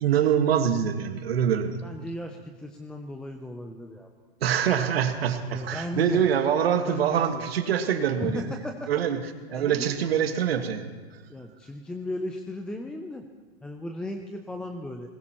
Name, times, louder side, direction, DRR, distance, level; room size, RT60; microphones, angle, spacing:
voice 1, 0.0-1.8 4.4-8.5 8.9-9.2 9.5-10.9, right 8 dB, 75° right, 6 dB, 1.6 m, -24 dB
voice 2, 1.8-4.1 5.5-6.3 6.8-7.4 8.2-8.9 9.5-10.1 11.3-13.3 13.6-15.1, left 1 dB, 5° left, 4 dB, 0.3 m, -36 dB
20.0 x 19.5 x 3.0 m, 1.4 s
hypercardioid pair, 135°, 31 cm